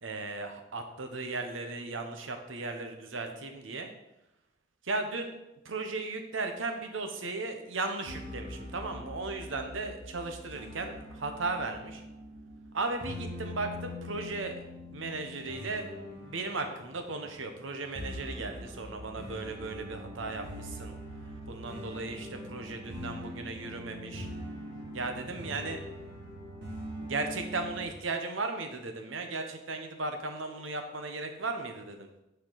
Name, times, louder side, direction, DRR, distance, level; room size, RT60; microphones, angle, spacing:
voice 1, 0.0-3.9 4.8-5.3 5.6-12.0 12.7-14.6 14.9-20.9 21.5-24.3 24.9-25.8 27.0-32.1, right 3 dB, 85° right, 5 dB, 1.0 m, -36 dB
sound 1, 8.1-27.9, left 1 dB, 60° right, 1.7 m, -43 dB
8.8 x 4.7 x 4.0 m, 0.88 s
head